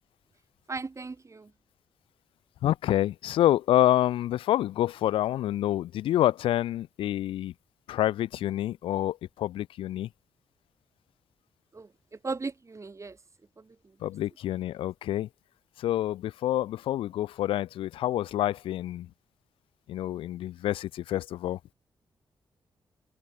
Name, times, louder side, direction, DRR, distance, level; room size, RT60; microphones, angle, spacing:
voice 1, 0.7-1.5 11.7-13.2 13.6-14.1, right 3 dB, 35° right, 1.3 m, -38 dB
voice 2, 2.6-7.5 7.9-10.1 14.0-15.3 15.8-19.1 19.9-21.6, left 13 dB, 90° left, 0.5 m, -27 dB
open air
cardioid pair, 55°, 9 cm